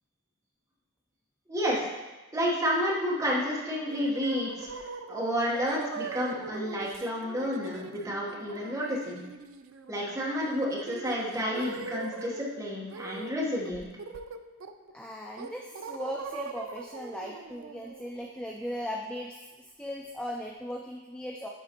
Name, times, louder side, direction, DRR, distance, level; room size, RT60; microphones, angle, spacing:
voice 1, 1.5-1.9 2.3-9.2 9.9-13.9, equal, 15° right, -5 dB, 1.1 m, -30 dB
sound 1, 3.9-12.4 12.9-13.3 13.6-14.9 15.4-19.1, right 4 dB, 75° right, 0.4 m, -42 dB
voice 2, 14.9-21.5, equal, 5° left, 0 dB, 0.3 m, -38 dB
10.0 x 3.9 x 2.9 m, 1.1 s
head